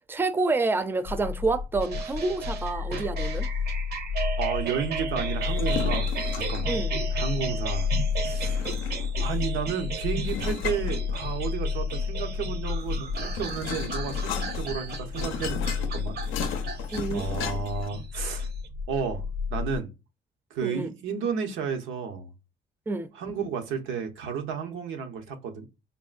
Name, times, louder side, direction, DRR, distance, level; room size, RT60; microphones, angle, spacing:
voice 1, 0.1-3.5 6.7-6.9 16.9-17.2 20.6-20.9 22.9-23.1, right 3 dB, 10° right, 0.4 m, -28 dB
sound 1, 1.0-19.8, left 6 dB, 45° left, 0.6 m, -31 dB
sound 2, 1.8-18.7, right 6 dB, 55° right, 0.6 m, -36 dB
voice 2, 4.4-6.7 7.1-7.9 8.2-8.7 9.2-16.2 16.5-16.8 17.1-18.5 18.9-19.2 19.5-19.9 20.5-22.3 23.1-25.7, right 6 dB, 85° right, 0.7 m, -32 dB
sound 3, 5.4-6.8 8.2-9.2 10.3-11.6 12.8-17.9, left 7 dB, 90° left, 0.5 m, -36 dB
3.6 x 2.1 x 2.4 m
cardioid pair, 90°, 20 cm